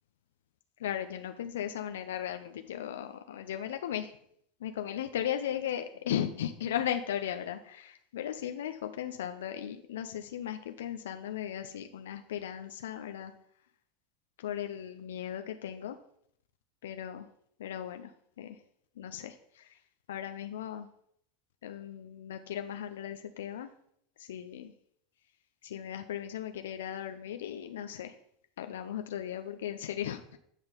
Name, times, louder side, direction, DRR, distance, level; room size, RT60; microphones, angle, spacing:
voice 1, 0.8-4.2 4.6-13.3 14.4-16.0 16.8-17.3 17.6-18.1 18.4-18.6 19.0-19.8 20.1-20.9 21.6-23.7 24.2-24.7 25.6-28.2 28.6-30.4, left 10 dB, 75° left, 7 dB, 0.5 m, -37 dB
8.9 x 3.9 x 5.1 m, 0.70 s
hypercardioid pair, 85°, 0 cm